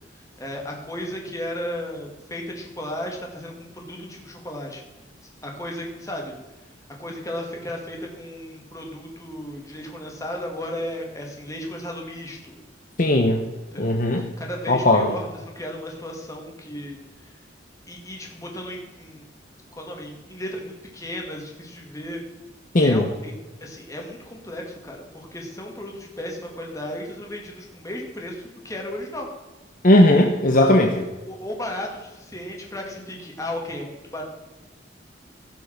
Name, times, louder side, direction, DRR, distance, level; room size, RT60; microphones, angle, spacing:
voice 1, 0.1-4.8 5.4-6.4 7.0-12.6 13.7-17.3 17.9-19.2 19.7-22.2 22.7-23.3 23.6-29.3 30.6-30.9 31.2-34.2, left 1 dB, 15° left, 0 dB, 2.2 m, -34 dB
voice 2, 13.0-13.4 13.8-14.3 14.7-15.1 22.7-23.1 29.8-31.0, left 1 dB, 45° left, 3 dB, 0.9 m, -17 dB
16.0 x 5.6 x 6.5 m, 1.2 s
head